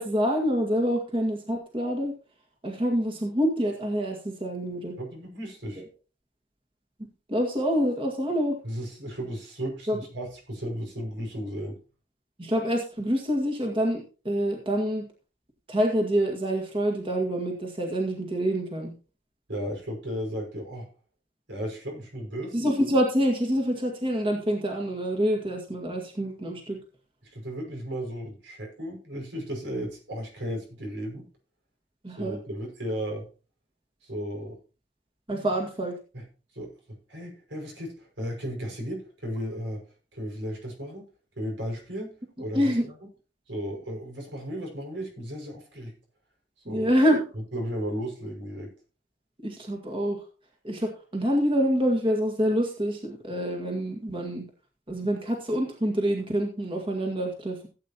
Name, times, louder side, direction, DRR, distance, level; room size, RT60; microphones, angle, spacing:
voice 1, 0.0-2.1 2.6-5.0 5.8-5.9 7.3-8.6 9.9-10.0 12.4-15.1 15.7-18.9 22.5-26.8 32.0-32.4 35.3-36.0 42.5-42.9 46.7-47.2 49.4-50.2 50.6-54.5 54.9-57.7, equal, 30° right, 1 dB, 1.9 m, -26 dB
voice 2, 5.0-5.8 8.6-11.8 19.5-20.9 21.5-22.6 27.2-31.3 32.2-33.3 34.0-34.6 36.1-36.2 36.5-36.7 37.1-39.8 40.1-41.1 41.4-42.1 42.4-42.7 43.5-45.9 46.6-46.9 47.5-48.7, equal, 85° right, 1 dB, 5.7 m, -35 dB
16.5 x 8.6 x 2.9 m, 0.35 s
head